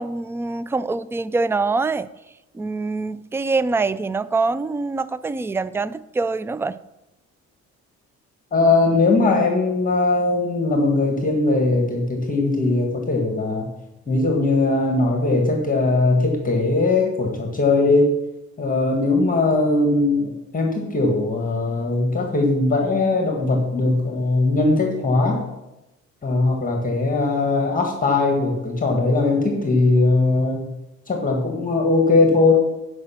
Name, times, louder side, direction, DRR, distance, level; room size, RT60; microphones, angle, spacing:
voice 1, 0.0-2.1 2.5-6.8, right 3 dB, 10° right, 16 dB, 0.3 m, -24 dB
voice 2, 8.5-13.7 14.1-18.1 18.6-25.4 26.2-30.7 31.1-32.5, left 3 dB, 25° left, 1 dB, 1.8 m, -20 dB
9.2 x 5.5 x 5.9 m, 0.95 s
cardioid pair, 90°, 30 cm